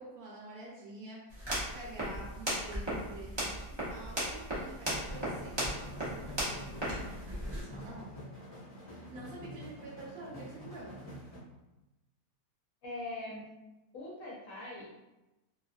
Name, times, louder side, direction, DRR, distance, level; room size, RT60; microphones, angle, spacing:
voice 1, 0.0-8.1 8.8-10.9, right 2 dB, 65° right, -5 dB, 1.0 m, -48 dB
sound 1, 1.3-7.6, equal, 40° right, 0.3 m, -36 dB
sound 2, 4.8-11.4, equal, 35° left, 0.4 m, -47 dB
voice 2, 12.8-13.4 13.9-14.9, left 2 dB, 65° left, -6 dB, 0.9 m, -41 dB
2.8 x 2.4 x 2.4 m, 1.0 s
omnidirectional pair, 1.8 m